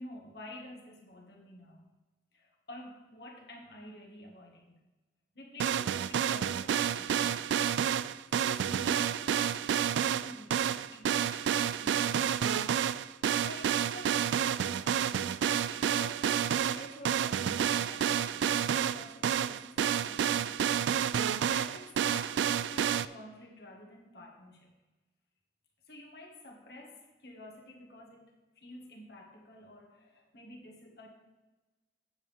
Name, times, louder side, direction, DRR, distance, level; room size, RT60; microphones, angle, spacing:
voice 1, 0.0-1.9 2.3-4.8 5.3-7.7 8.0-12.9 13.4-15.4 15.7-20.7 21.5-24.7 25.9-31.1, left 1 dB, 65° left, 0 dB, 1.8 m, -50 dB
sound 1, 5.6-23.0, right 9 dB, 90° right, 0.3 m, -29 dB
9.4 x 7.7 x 3.6 m, 1.2 s
head